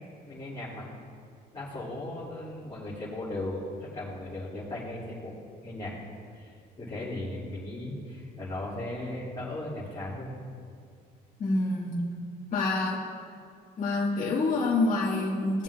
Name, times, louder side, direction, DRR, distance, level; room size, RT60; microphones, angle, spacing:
voice 1, 0.3-0.9 1.5-5.3 5.6-6.0 6.3-10.3, left 1 dB, 25° left, -10 dB, 2.4 m, -37 dB
voice 2, 11.4-12.0 12.5-13.0 13.8-15.6, left 2 dB, 50° left, -5 dB, 1.5 m, -27 dB
17.5 x 7.2 x 2.4 m, 2.2 s
cardioid pair, 110°, 17 cm